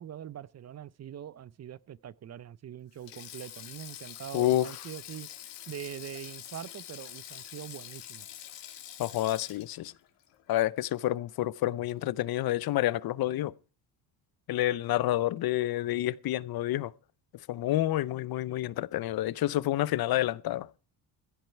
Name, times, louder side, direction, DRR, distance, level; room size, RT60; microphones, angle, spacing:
voice 1, 0.0-5.3 5.7-8.3, right 10 dB, 40° right, 0.6 m, -43 dB
Sink (filling or washing), 2.9-11.4 11.7-11.9 13.1-13.3, left 12 dB, 80° left, 2.3 m, -46 dB
voice 2, 4.3-4.7 9.0-9.9 10.5-13.5 14.5-16.9 17.5-20.7, left 14 dB, 60° left, 0.7 m, -29 dB
16.0 x 9.0 x 4.6 m
supercardioid pair, 80°, 42 cm